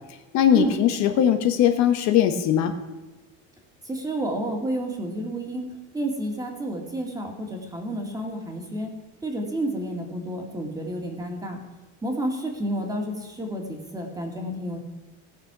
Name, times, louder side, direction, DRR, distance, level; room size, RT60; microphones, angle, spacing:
voice 1, 0.3-2.7, left 10 dB, 55° left, 7 dB, 1.1 m, -20 dB
voice 2, 3.8-5.7 5.9-8.9 9.2-11.6 12.0-14.8, right 1 dB, 10° right, 2 dB, 2.1 m, -30 dB
17.5 x 6.7 x 5.9 m, 1.1 s
cardioid pair, 150°, 34 cm